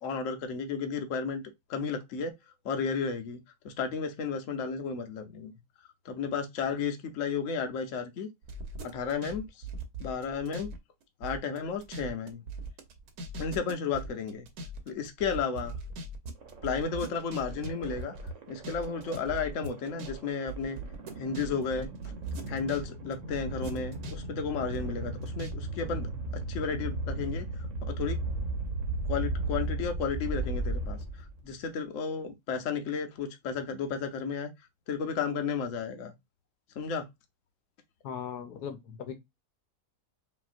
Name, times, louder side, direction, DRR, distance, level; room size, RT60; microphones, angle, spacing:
voice 1, 0.0-1.4 1.7-2.3 2.6-3.4 3.6-5.5 6.0-8.3 8.8-9.6 10.0-10.7 11.2-12.4 13.4-14.5 14.9-15.8 16.6-18.2 18.5-20.8 21.2-21.9 22.5-26.1 26.5-27.5 27.9-28.2 29.1-31.0 31.4-34.5 34.9-36.1 36.8-37.0, left 5 dB, 55° left, 1.1 m, -33 dB
sound 1, 8.4-10.8 11.0-22.8 23.1-25.5 25.8-25.9, right 2 dB, 70° right, 1.4 m, -40 dB
sound 2, 16.4-31.5, right 2 dB, 50° right, 1.3 m, -36 dB
voice 2, 38.0-39.1, left 8 dB, 75° left, 1.3 m, -38 dB
5.4 x 2.8 x 2.5 m
omnidirectional pair, 1.8 m